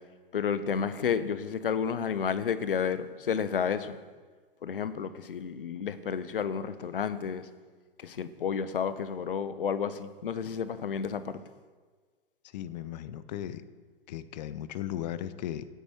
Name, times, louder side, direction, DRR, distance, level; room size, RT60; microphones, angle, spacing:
voice 1, 0.3-4.0 4.6-7.5 8.0-11.4, left 7 dB, 65° left, 13 dB, 1.2 m, -31 dB
voice 2, 12.5-13.6 14.1-15.7, left 11 dB, 45° left, 14 dB, 1.0 m, -36 dB
18.0 x 9.9 x 4.6 m, 1.5 s
figure-of-eight pair, 105°, 29 cm